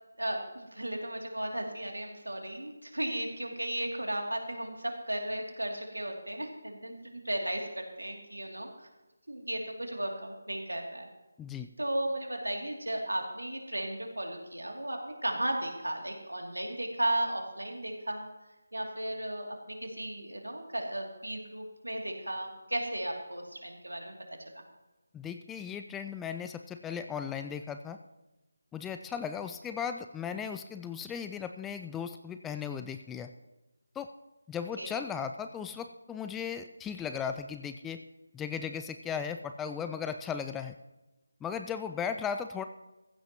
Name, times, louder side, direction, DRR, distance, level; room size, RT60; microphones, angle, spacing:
voice 1, 0.2-8.9 9.3-11.1 11.8-18.3 18.7-24.2 24.5-24.6 34.8-34.9, right 1 dB, 80° right, 2 dB, 2.8 m, -35 dB
voice 2, 25.1-28.0 28.7-33.3 34.0-34.1 34.5-38.0 38.3-40.8 41.4-42.6, left 7 dB, 5° left, 8 dB, 0.3 m, -36 dB
16.5 x 15.0 x 3.0 m, 1.1 s
figure-of-eight pair, 155°, 0 cm